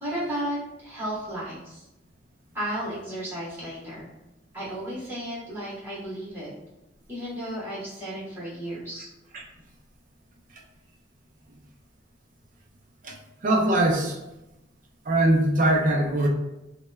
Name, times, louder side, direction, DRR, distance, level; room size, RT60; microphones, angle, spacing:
voice 1, 0.0-1.8 2.5-4.1 4.5-6.5 7.1-9.0, right 1 dB, 15° right, -11 dB, 1.3 m, -33 dB
voice 2, 13.4-14.2 15.1-16.3, right 1 dB, 45° right, 0 dB, 0.4 m, -21 dB
3.1 x 2.1 x 2.2 m, 0.95 s
head